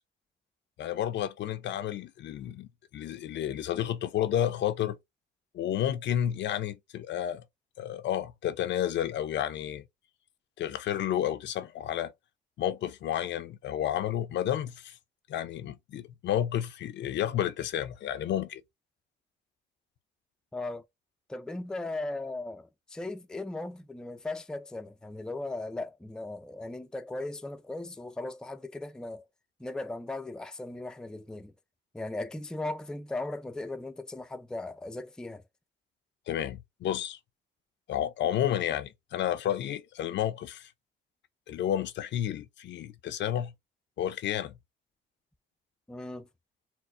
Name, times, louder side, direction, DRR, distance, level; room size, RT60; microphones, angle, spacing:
voice 1, 0.8-5.0 5.5-7.4 7.8-9.8 10.6-12.1 12.6-15.0 15.3-18.6 36.3-37.2 37.9-40.7 41.5-43.5 44.0-44.5, left 11 dB, 65° left, 0.4 m, -31 dB
voice 2, 20.5-20.9 21.3-29.2 29.6-31.5 31.9-35.4 45.9-46.3, left 2 dB, 5° left, 0.3 m, -37 dB
4.2 x 2.0 x 2.5 m
cardioid pair, 90°, 20 cm